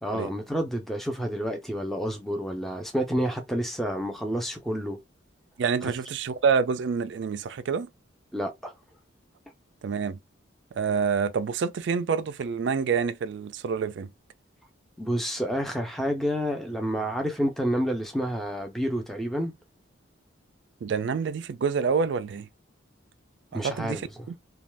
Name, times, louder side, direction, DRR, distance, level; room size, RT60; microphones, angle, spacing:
voice 1, 0.0-5.0 5.8-5.9 8.3-8.7 15.0-19.5 23.5-24.0, equal, ahead, 0.5 m, -29 dB
voice 2, 5.6-7.9 9.8-10.2 10.8-14.1 20.8-22.5 23.5-24.0 24.3-24.4, right 6 dB, 60° right, 0.3 m, -27 dB
2.5 x 2.3 x 3.2 m
head